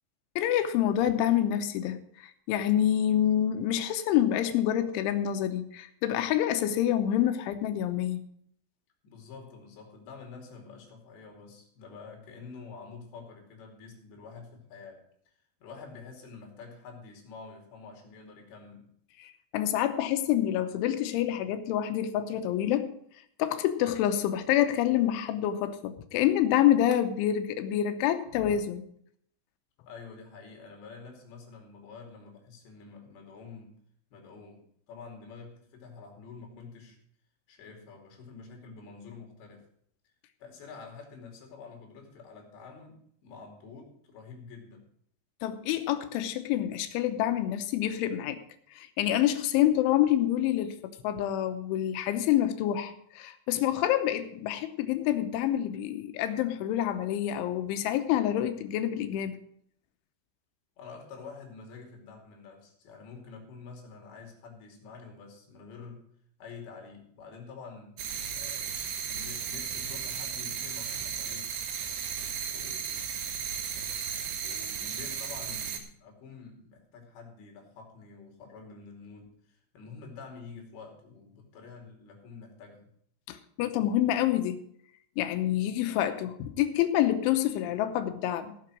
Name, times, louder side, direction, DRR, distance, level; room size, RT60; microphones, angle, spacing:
voice 1, 0.4-8.2 19.2-22.9 23.4-28.8 45.4-48.4 48.7-50.8 51.0-59.4 83.3-84.6 85.2-88.5, left 11 dB, 80° left, 9 dB, 3.2 m, -27 dB
voice 2, 9.0-15.4 15.6-18.9 29.9-33.7 34.1-37.0 37.5-39.6 40.0-40.1 40.4-44.8 60.8-66.1 66.4-68.0 68.3-71.5 72.5-73.1 74.4-82.9, left 4 dB, 65° left, 1 dB, 4.8 m, -48 dB
sound 1, 68.0-75.8, right 8 dB, 65° right, 2.9 m, -35 dB
17.5 x 6.0 x 6.2 m, 0.68 s
omnidirectional pair, 5.5 m